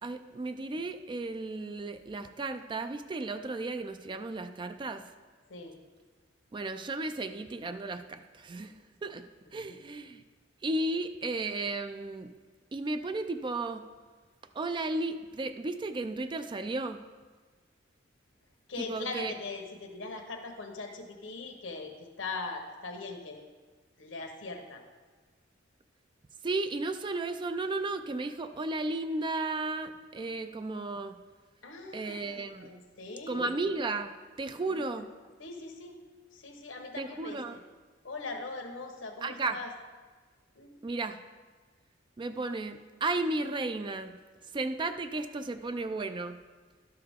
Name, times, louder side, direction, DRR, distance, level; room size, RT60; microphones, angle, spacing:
voice 1, 0.0-5.1 6.5-9.3 9.5-10.2 10.6-12.3 12.7-13.8 14.5-17.0 18.8-19.3 26.4-31.2 31.9-32.8 33.3-35.1 37.0-37.6 39.2-39.6 40.8-41.2 42.2-44.2 44.4-46.4, right 2 dB, 25° right, 9 dB, 0.3 m, -34 dB
voice 2, 18.7-23.4 24.0-24.8 31.6-33.5 34.7-35.0 35.4-36.0 36.3-37.6 38.0-39.7 40.5-40.7, left 3 dB, 90° left, 2 dB, 1.1 m, -41 dB
11.5 x 6.7 x 3.6 m, 1.4 s
head